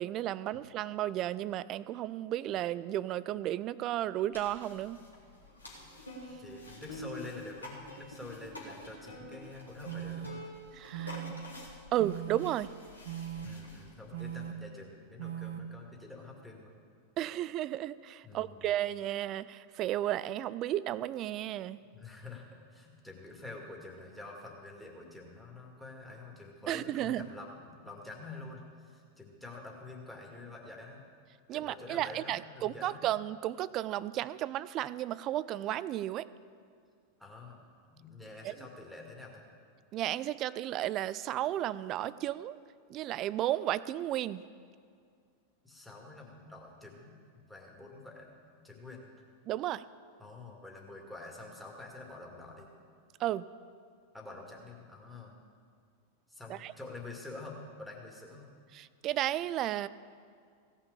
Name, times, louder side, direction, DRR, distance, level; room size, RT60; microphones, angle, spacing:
voice 1, 0.0-5.0 10.7-11.2 11.9-12.7 17.2-21.8 26.7-27.2 31.5-36.3 38.4-38.6 39.9-42.6 42.9-44.4 49.5-49.8 53.2-53.5 56.5-56.7 58.7-59.9, right 13 dB, 35° right, 18 dB, 0.4 m, -33 dB
sound 1, 4.3-14.5, left 1 dB, 80° left, 2.6 m, -48 dB
voice 2, 6.3-10.4 13.4-16.7 18.2-18.7 21.9-31.0 31.5-33.1 37.2-37.6 37.9-39.5 45.6-48.3 48.6-49.0 50.2-52.7 54.1-55.4 56.3-58.5, left 2 dB, 5° left, -2 dB, 2.3 m, -47 dB
sound 2, 9.8-10.3 10.9-11.3 12.0-12.4 13.0-13.5 14.1-14.5 15.2-15.6, right 11 dB, 55° right, 0.9 m, -39 dB
16.5 x 5.8 x 8.3 m, 2.2 s
figure-of-eight pair, 90°, 0 cm